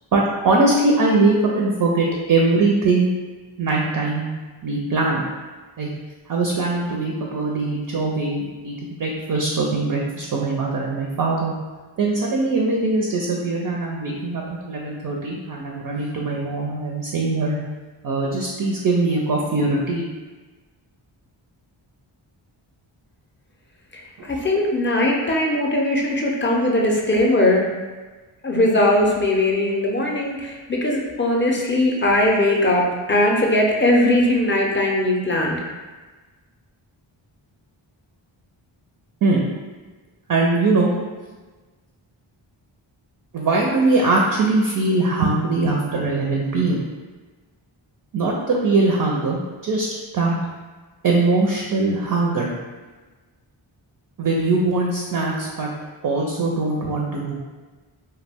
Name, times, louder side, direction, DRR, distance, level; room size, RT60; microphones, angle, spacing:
voice 1, 0.1-3.1 3.6-4.3 4.6-5.2 5.8-5.9 6.3-11.5 12.0-17.6 18.0-20.0 24.2-24.3 39.2-39.4 40.3-40.9 43.3-46.8 48.1-49.9 50.1-50.4 51.0-52.5 54.2-55.7 56.0-57.4, right 3 dB, 45° right, -2 dB, 0.4 m, -21 dB
voice 2, 23.9-27.6 28.4-35.6, left 1 dB, 25° left, -2 dB, 0.5 m, -20 dB
2.2 x 2.1 x 3.4 m, 1.3 s
cardioid pair, 55°, 50 cm